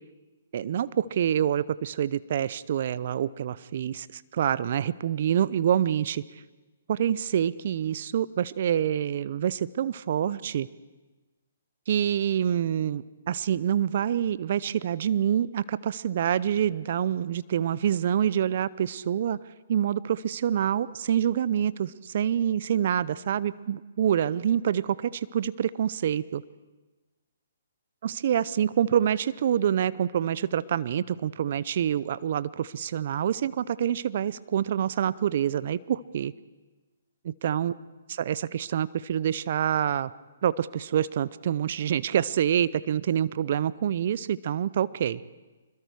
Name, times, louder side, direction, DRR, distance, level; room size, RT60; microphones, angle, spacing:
voice 1, 0.5-6.2 6.9-10.7 11.9-19.4 19.7-26.4 28.0-36.3 37.2-37.7 38.1-40.1 40.4-45.2, right 9 dB, 55° right, 18 dB, 0.6 m, -26 dB
25.5 x 22.0 x 4.8 m, 1.2 s
figure-of-eight pair, 135°, 0 cm